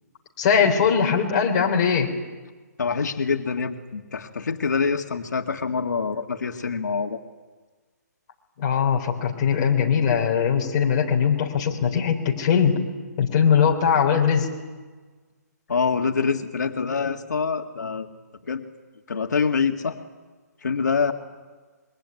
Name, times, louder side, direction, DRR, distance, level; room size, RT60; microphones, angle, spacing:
voice 1, 0.4-2.1 8.6-12.8 13.2-14.5, left 7 dB, 25° left, 0 dB, 3.9 m, -20 dB
voice 2, 2.8-7.2 15.7-18.1 18.5-18.6 19.1-20.0 20.6-21.1, left 5 dB, 75° left, 4 dB, 2.1 m, -25 dB
26.5 x 23.0 x 9.7 m, 1.4 s
hypercardioid pair, 170°, 9 cm